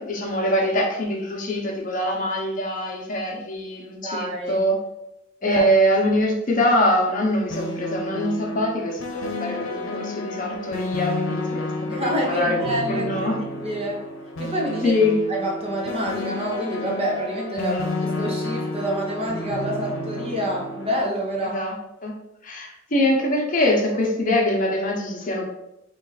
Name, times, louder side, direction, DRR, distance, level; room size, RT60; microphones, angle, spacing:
voice 1, 0.0-4.8 5.4-13.4 14.8-15.2 17.6-17.8 21.4-21.7 22.0-22.1 22.4-25.4, left 1 dB, 45° left, -1 dB, 0.9 m, -23 dB
voice 2, 4.0-4.6 5.4-5.7 11.9-14.0 14.4-15.0 15.3-21.6, equal, 30° right, -2 dB, 0.9 m, -27 dB
sound 1, 7.5-21.0, left 2 dB, 90° left, 0.7 m, -31 dB
3.8 x 2.4 x 4.0 m, 0.87 s
head